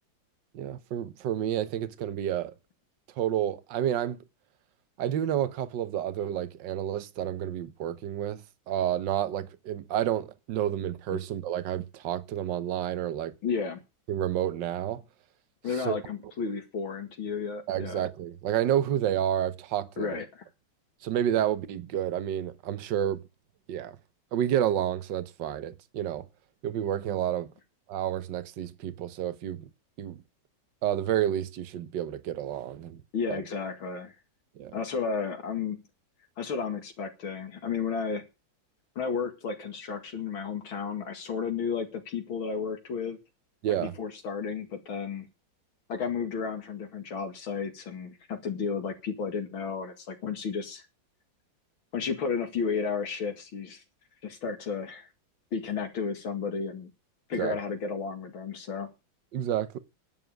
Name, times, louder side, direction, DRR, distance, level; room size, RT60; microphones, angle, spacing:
voice 1, 0.5-2.5 3.2-4.2 5.0-13.3 14.1-15.0 15.8-16.0 17.7-20.1 21.0-23.2 23.7-24.0 24.3-26.2 26.6-27.5 27.9-29.7 30.0-30.2 30.8-33.0 33.3-33.4 34.6-34.7 43.6-43.9 57.3-57.5 59.3-59.8, right 11 dB, 70° right, 1.6 m, -30 dB
voice 2, 13.4-13.8 15.6-18.1 20.0-20.4 33.1-34.2 34.7-35.8 36.4-38.2 39.0-43.2 44.0-45.3 45.9-50.8 51.9-53.8 54.2-55.1 55.5-56.9 57.3-58.9, left 5 dB, 85° left, 2.9 m, -33 dB
11.0 x 7.2 x 9.1 m
omnidirectional pair, 2.1 m